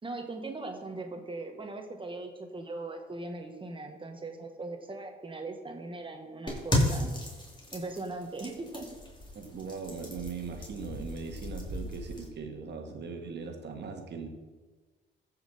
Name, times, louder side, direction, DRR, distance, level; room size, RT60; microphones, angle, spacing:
voice 1, 0.0-7.1 7.7-8.9, right 2 dB, 25° right, 4 dB, 1.5 m, -39 dB
sound 1, 6.5-12.3, left 1 dB, 25° left, 2.8 m, -34 dB
voice 2, 9.3-14.3, right 5 dB, 60° right, 3 dB, 1.8 m, -39 dB
14.5 x 5.8 x 4.2 m, 1.4 s
cardioid pair, 90°, 20 cm